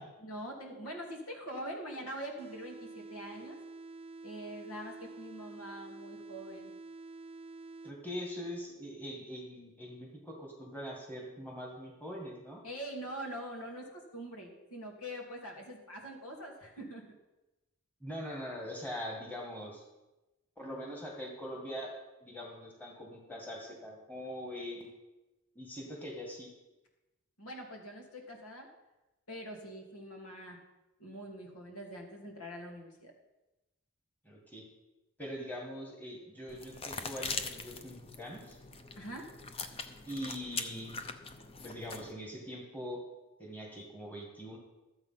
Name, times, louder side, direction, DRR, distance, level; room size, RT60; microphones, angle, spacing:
voice 1, 0.2-3.6 4.2-6.7 12.6-17.0 27.4-28.7 29.3-30.6 31.0-33.1 39.0-39.3, equal, 90° left, 0 dB, 2.6 m, -44 dB
sound 1, 2.4-8.4, right 3 dB, 25° right, 0.4 m, -48 dB
voice 2, 7.8-12.6 18.0-19.8 20.6-21.9 22.2-24.9 25.6-26.5 34.2-34.6 35.2-38.6 40.1-41.0 41.6-43.0 43.4-44.6, equal, 10° left, -1 dB, 1.8 m, -42 dB
sound 2, 36.5-42.1, left 4 dB, 25° left, 0.6 m, -42 dB
12.5 x 8.0 x 5.7 m, 1.0 s
head